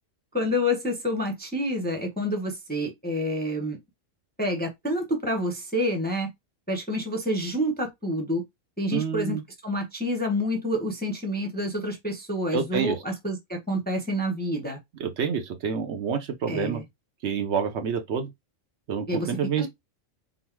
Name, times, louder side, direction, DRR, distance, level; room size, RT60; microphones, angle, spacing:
voice 1, 0.3-3.8 4.4-6.3 6.7-8.4 8.8-14.8 16.5-16.8 19.1-19.3 19.6-19.7, left 1 dB, 10° left, 0.6 m, -28 dB
voice 2, 8.9-9.4 12.5-13.0 15.0-16.8 17.2-18.3 18.9-19.7, right 6 dB, 65° right, 0.9 m, -28 dB
3.9 x 2.0 x 4.4 m
omnidirectional pair, 1.3 m